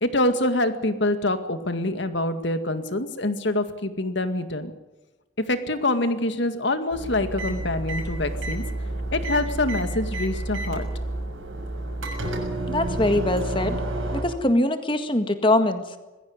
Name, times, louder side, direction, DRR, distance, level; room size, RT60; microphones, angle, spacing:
voice 1, 0.0-4.7 5.5-8.7 9.1-10.9, left 1 dB, 65° left, 9 dB, 2.1 m, -25 dB
sound 1, 6.9-14.2, right 1 dB, 90° right, 6.4 m, -30 dB
voice 2, 12.7-13.8 14.1-16.0, left 1 dB, 25° left, 8 dB, 1.8 m, -23 dB
21.0 x 15.5 x 9.6 m, 1.1 s
head